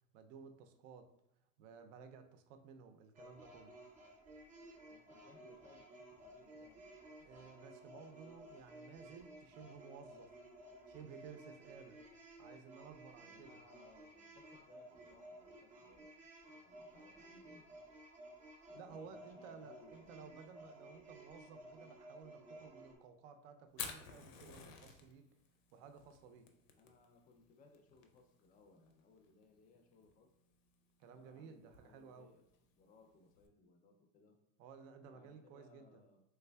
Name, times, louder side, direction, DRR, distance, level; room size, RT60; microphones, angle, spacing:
voice 1, 0.1-1.1 1.6-3.7 7.2-10.3 10.9-12.0 12.4-13.6 18.7-25.3 25.7-26.5 31.0-32.3 34.6-36.0, right 6 dB, 75° right, 8 dB, 0.5 m, -56 dB
sound 1, 3.1-23.0, right 1 dB, 20° right, 0.6 m, -56 dB
voice 2, 4.9-7.0 13.2-17.6 18.7-20.5 26.8-30.3 31.1-32.4 32.8-34.4 35.0-36.2, left 3 dB, 25° left, 4 dB, 0.4 m, -65 dB
Fire, 23.7-33.5, left 7 dB, 85° left, 0.6 m, -53 dB
3.3 x 3.3 x 2.2 m, 0.81 s
supercardioid pair, 135°, 38 cm